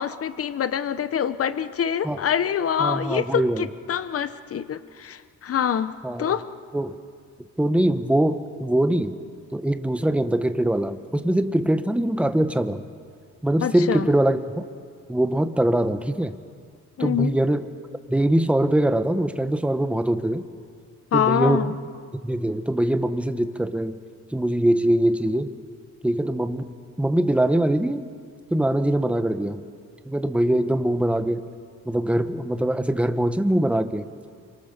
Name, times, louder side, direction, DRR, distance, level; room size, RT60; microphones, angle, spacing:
voice 1, 0.0-5.9 6.2-6.4 13.6-14.1 17.0-17.3 21.1-21.8, left 8 dB, 50° left, 13 dB, 1.1 m, -25 dB
voice 2, 2.8-3.6 6.0-6.3 6.7-7.0 7.6-9.2 9.5-12.8 13.4-14.7 15.1-16.3 17.0-17.7 18.1-20.4 21.1-21.7 22.2-24.0 24.3-25.5 26.0-28.1 28.5-29.6 30.1-31.5 31.8-34.1, right 1 dB, 5° right, 9 dB, 1.2 m, -22 dB
25.0 x 24.5 x 6.9 m, 2.1 s
cardioid pair, 90°, 30 cm